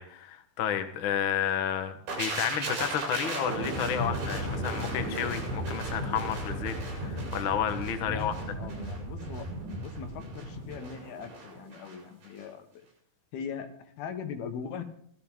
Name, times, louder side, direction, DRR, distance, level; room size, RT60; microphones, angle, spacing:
voice 1, 0.0-8.3, left 9 dB, 65° left, 8 dB, 1.2 m, -31 dB
sound 1, 2.1-12.0 12.2-12.4, right 1 dB, 75° right, 6.6 m, -35 dB
voice 2, 8.1-9.5 9.8-12.9 13.3-14.8, left 7 dB, 80° left, 8 dB, 3.4 m, -40 dB
17.0 x 14.0 x 3.7 m, 0.66 s
omnidirectional pair, 4.3 m